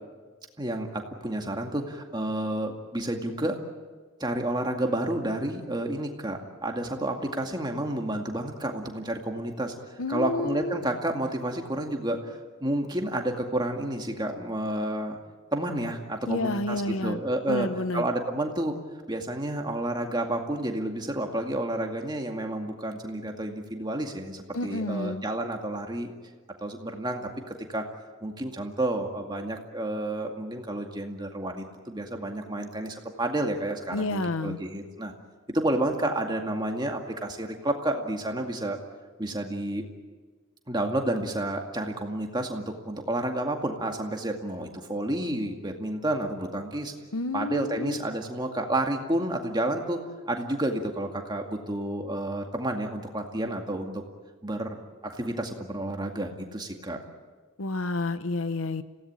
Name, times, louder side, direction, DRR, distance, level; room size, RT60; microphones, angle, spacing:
voice 1, 0.6-3.6 4.2-15.2 15.5-17.7 17.9-18.8 19.1-26.1 26.6-27.8 28.2-35.1 35.5-38.8 39.2-39.8 40.7-46.9 47.3-50.0 50.3-54.0 54.4-57.0, right 1 dB, 20° right, 3 dB, 2.2 m, -30 dB
voice 2, 10.0-10.8 16.3-17.2 17.5-18.1 24.5-25.2 33.9-34.6 47.1-48.0 57.6-58.8, left 2 dB, 70° left, 12 dB, 1.0 m, -30 dB
27.0 x 17.5 x 8.9 m, 1.4 s
head